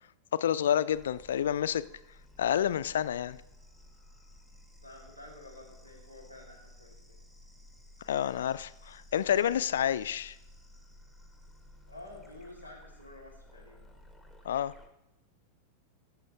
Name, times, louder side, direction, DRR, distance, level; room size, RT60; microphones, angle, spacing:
voice 1, 0.3-1.8 2.4-3.4 8.1-10.4 14.4-14.7, left 10 dB, 60° left, 16 dB, 0.3 m, -29 dB
sound 1, 0.9-14.9, left 1 dB, 5° right, 1.1 m, -55 dB
voice 2, 4.8-7.2 11.9-13.9, left 2 dB, 90° right, -1 dB, 2.4 m, -50 dB
14.0 x 6.3 x 3.3 m, 0.89 s
figure-of-eight pair, 90°, 0 cm